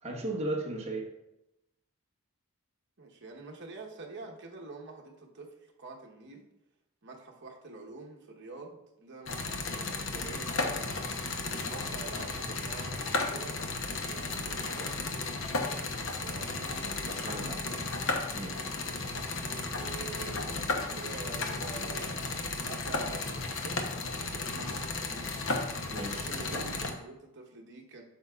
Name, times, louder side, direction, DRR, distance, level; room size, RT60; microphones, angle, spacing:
voice 1, 0.0-1.1 17.1-17.9 18.3-18.6 25.9-26.7, right 1 dB, 30° right, -1 dB, 1.1 m, -37 dB
voice 2, 3.0-6.5 7.0-10.9 11.5-13.5 13.9-15.3 15.7-18.2 19.7-22.3 22.7-23.8 24.2-25.3 26.1-28.0, right 3 dB, 55° right, 1 dB, 1.0 m, -47 dB
sound 1, 9.3-26.9, left 3 dB, 60° left, 0.8 m, -34 dB
9.3 x 6.9 x 2.4 m, 0.91 s
head